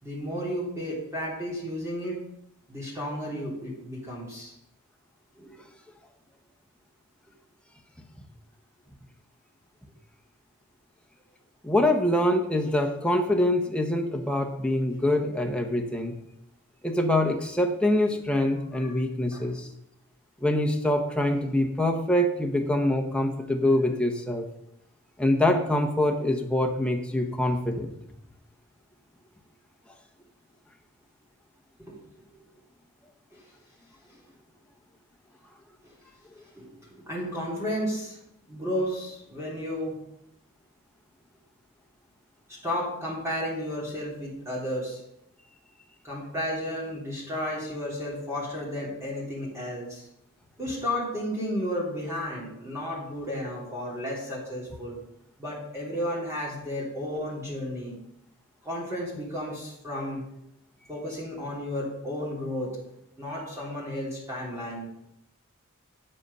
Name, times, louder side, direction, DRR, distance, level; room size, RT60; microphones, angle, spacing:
voice 1, 0.0-2.2 2.7-4.5 5.4-5.6 18.8-18.9 19.3-19.5 31.8-32.5 33.3-33.4 35.8-35.9 36.5-38.2 38.5-39.9 42.5-45.0 46.0-50.1 50.6-55.0 55.4-57.9 58.6-60.3 60.9-62.7 63.2-64.9, equal, 15° right, -5 dB, 3.2 m, -33 dB
voice 2, 11.6-16.2 16.8-19.7 20.4-24.5 25.2-27.9, left 1 dB, 5° left, 3 dB, 1.0 m, -25 dB
9.2 x 7.8 x 5.5 m, 0.80 s
head